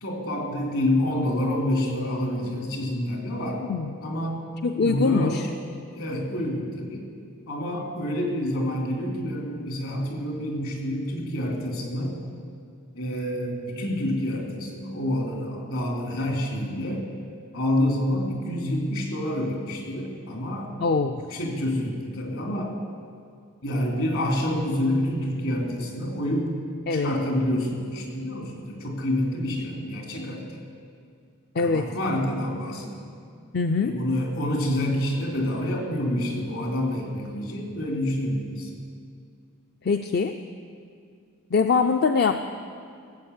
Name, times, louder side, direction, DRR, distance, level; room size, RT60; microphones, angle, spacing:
voice 1, 0.0-3.6 4.0-4.5 4.8-5.6 5.9-7.1 7.5-12.2 12.9-17.1 17.5-20.7 21.3-22.7 23.6-26.6 26.9-30.5 31.6-33.1 33.8-38.7, left 1 dB, 70° left, 0 dB, 3.0 m, -28 dB
voice 2, 4.6-5.5 20.8-21.2 26.9-27.1 31.5-31.9 33.5-34.0 39.8-40.3 41.5-42.4, left 4 dB, 50° left, 7 dB, 0.4 m, -23 dB
17.0 x 7.8 x 8.1 m, 2.3 s
head